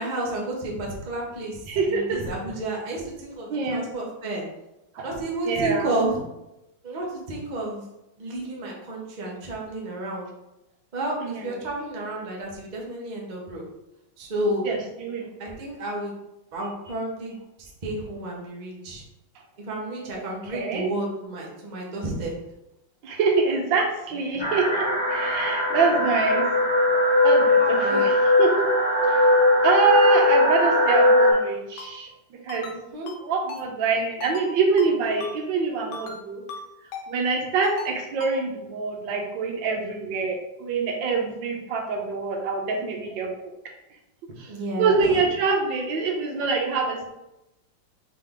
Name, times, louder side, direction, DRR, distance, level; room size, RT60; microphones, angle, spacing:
voice 1, 0.0-4.4 5.0-6.2 6.8-7.8 8.2-10.3 10.9-13.6 14.2-14.6 15.4-16.1 16.5-19.0 19.6-22.3 27.6-28.1 32.7-33.1 44.5-45.2, right 1 dB, 45° right, -2 dB, 0.6 m, -31 dB
voice 2, 1.7-2.2 3.5-3.9 4.9-5.1 5.4-5.9 11.2-11.5 14.6-15.3 20.1-20.9 23.0-26.5 27.2-28.7 29.1-29.3 29.6-32.1 32.4-32.8 33.2-36.4 37.1-43.5 44.4-44.5 44.8-47.1, right 4 dB, 75° right, 2 dB, 1.4 m, -25 dB
sound 1, 24.4-31.3, left 1 dB, 5° left, 0.8 m, -20 dB
Ringtone, 31.8-31.9 32.5-32.8 33.1-33.2 33.5-33.6 34.2-34.5 34.8-34.9 35.2-35.3 35.9-36.2 36.5-36.6 36.9-37.1 37.6-37.9 38.2-38.3, left 5 dB, 70° left, 1.3 m, -37 dB
3.7 x 3.7 x 3.5 m, 0.92 s
omnidirectional pair, 2.1 m